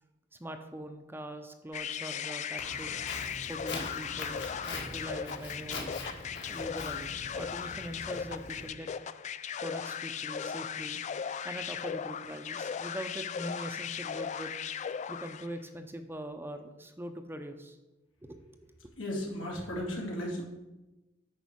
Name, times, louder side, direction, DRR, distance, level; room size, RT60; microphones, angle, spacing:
voice 1, 0.4-3.0 3.5-5.9 6.5-8.9 9.6-11.0 11.4-14.6 15.1-17.8 18.2-18.4, equal, 10° right, 6 dB, 0.6 m, -42 dB
sound 1, 1.7-15.6, left 7 dB, 40° left, 0.3 m, -37 dB
Walk footsteps, 2.6-8.7, left 3 dB, 65° left, 1.8 m, -42 dB
voice 2, 19.0-20.4, left 1 dB, 85° left, -2 dB, 2.5 m, -35 dB
9.5 x 4.5 x 6.2 m, 1.0 s
head